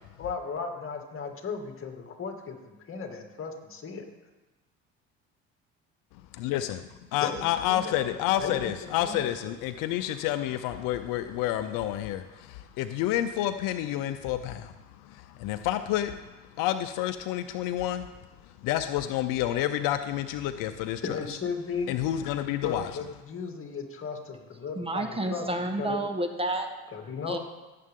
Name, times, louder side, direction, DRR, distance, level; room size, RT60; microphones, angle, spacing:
voice 1, 0.2-4.1 7.2-9.3 21.0-21.9 22.6-25.5 25.8-26.0 26.9-27.4, left 5 dB, 40° left, 4 dB, 2.3 m, -36 dB
voice 2, 6.3-18.1 18.5-21.2 21.9-22.9, left 12 dB, 75° left, 10 dB, 0.7 m, -29 dB
voice 3, 24.7-26.7 27.3-27.4, right 2 dB, 15° right, 5 dB, 1.3 m, -30 dB
17.5 x 7.6 x 3.7 m, 1.2 s
supercardioid pair, 85°, 33 cm